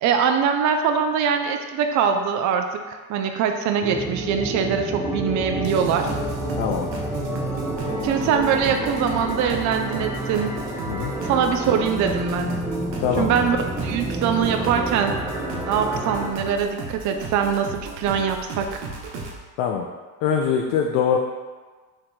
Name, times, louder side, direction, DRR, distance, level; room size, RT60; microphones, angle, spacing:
voice 1, 0.0-6.1 8.0-10.6 11.2-12.5 13.2-15.2 15.7-18.8, right 7 dB, 40° right, 5 dB, 0.4 m, -23 dB
sound 1, 3.8-16.3, right 1 dB, 5° right, 0.7 m, -29 dB
sound 2, 5.6-19.4, right 3 dB, 90° right, 0.7 m, -36 dB
voice 2, 6.6-6.9 10.9-11.1 13.0-13.3 19.6-19.9 20.2-21.2, left 7 dB, 65° left, 2 dB, 0.5 m, -22 dB
3.6 x 2.5 x 4.3 m, 1.4 s
hypercardioid pair, 70°, 49 cm